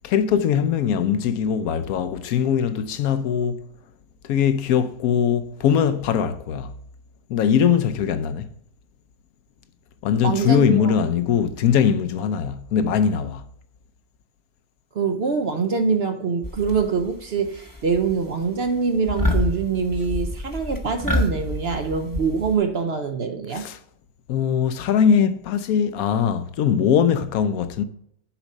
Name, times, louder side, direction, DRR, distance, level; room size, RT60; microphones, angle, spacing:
voice 1, 0.0-3.6 4.2-6.7 7.3-8.5 10.0-13.4 23.5-23.8 24.3-27.8, left 8 dB, 75° left, 1.1 m, -21 dB
voice 2, 10.2-10.9 14.9-23.6, right 5 dB, 55° right, 0.8 m, -24 dB
sound 1, 16.4-17.1 17.5-18.1 18.4-18.7 19.1-22.6, left 1 dB, 15° left, 0.8 m, -27 dB
7.1 x 4.3 x 5.2 m
omnidirectional pair, 1.5 m